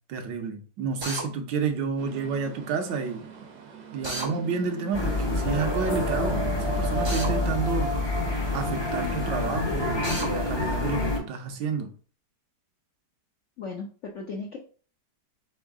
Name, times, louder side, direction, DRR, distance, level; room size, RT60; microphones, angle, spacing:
voice 1, 0.1-3.3 3.9-7.9 8.5-11.9, right 5 dB, 80° right, 5 dB, 1.4 m, -30 dB
Drill, 1.0-1.3 4.0-4.3 7.0-7.3 10.0-10.3, right 1 dB, 45° right, 0.3 m, -32 dB
sound 1, 2.0-7.4, right 5 dB, 60° right, 1.1 m, -37 dB
sound 2, 4.9-11.2, left 2 dB, 30° left, 0.5 m, -27 dB
voice 2, 13.6-14.6, left 4 dB, 70° left, 1 dB, 0.7 m, -36 dB
3.9 x 3.6 x 3.5 m, 0.40 s
omnidirectional pair, 2.0 m